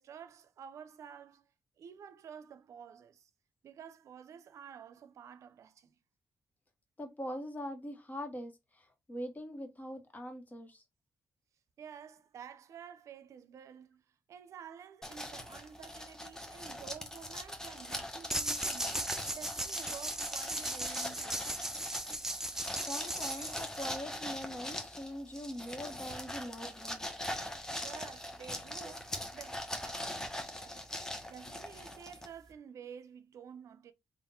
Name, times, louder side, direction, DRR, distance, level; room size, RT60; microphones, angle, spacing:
voice 1, 0.0-1.5 1.8-3.3 3.6-6.0 11.8-19.1 19.3-21.9 27.8-30.1 30.6-30.9 31.3-33.9, right 7 dB, 70° right, 0.5 m, -51 dB
voice 2, 7.0-10.8 22.7-27.1, equal, 30° left, 1.4 m, -42 dB
sound 1, 15.0-32.5, left 1 dB, 10° left, 1.1 m, -42 dB
sound 2, 18.3-24.0, right 1 dB, 10° right, 0.6 m, -37 dB
3.5 x 2.5 x 4.3 m
cardioid pair, 60°, 5 cm